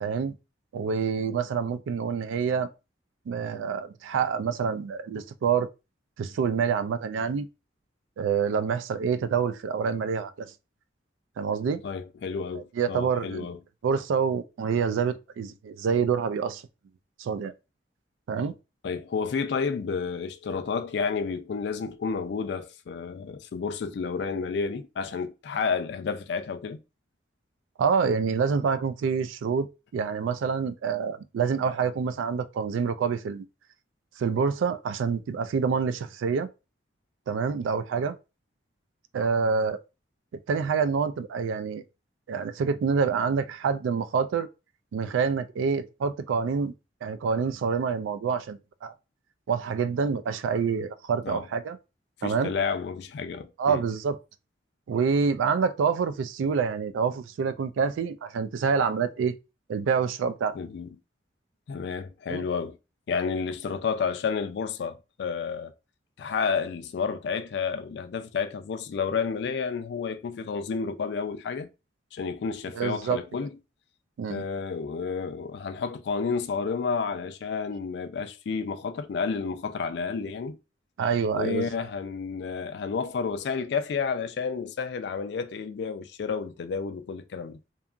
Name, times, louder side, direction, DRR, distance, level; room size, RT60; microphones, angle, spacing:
voice 1, 0.0-0.4 0.7-2.7 3.3-5.7 6.2-7.5 8.2-10.5 11.4-11.8 12.8-13.5 13.8-16.6 17.2-17.5 18.3-18.5 27.8-33.5 34.2-36.5 37.3-38.2 39.1-39.8 40.5-41.8 42.3-44.5 44.9-46.7 47.0-48.9 49.5-51.8 52.2-52.5 53.6-54.2 54.9-59.4 59.7-60.6 62.3-62.4 72.7-73.2 74.2-74.4 81.0-81.7, right 6 dB, 85° right, 0.3 m, -27 dB
voice 2, 11.8-13.6 18.8-26.8 51.2-51.4 52.2-53.8 60.5-61.0 61.7-62.8 63.1-65.7 66.2-71.7 72.1-73.6 74.3-80.6 81.3-87.6, left 5 dB, 60° left, 0.3 m, -31 dB
2.8 x 2.3 x 2.4 m
head